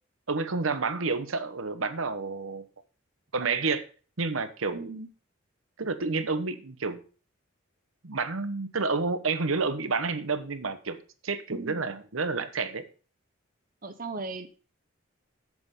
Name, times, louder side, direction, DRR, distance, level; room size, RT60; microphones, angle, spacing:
voice 1, 0.3-2.6 3.3-3.8 4.2-4.9 5.8-7.0 8.0-11.0 11.2-12.8, right 4 dB, 85° right, 11 dB, 1.1 m, -29 dB
voice 2, 4.7-5.1 11.5-11.8 13.8-14.5, right 3 dB, 45° right, 8 dB, 0.9 m, -37 dB
7.8 x 7.8 x 5.3 m, 0.38 s
head